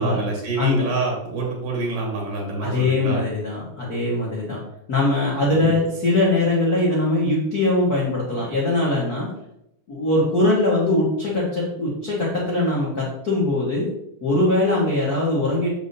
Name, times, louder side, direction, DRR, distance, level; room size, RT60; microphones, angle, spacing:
voice 1, 0.0-3.2 5.6-5.7, right 3 dB, 65° right, -1 dB, 3.3 m, -26 dB
voice 2, 2.6-4.6 4.9-9.3 9.9-13.9 14.2-15.7, left 2 dB, 60° left, -6 dB, 1.0 m, -21 dB
7.3 x 6.9 x 2.7 m, 0.81 s
omnidirectional pair, 4.2 m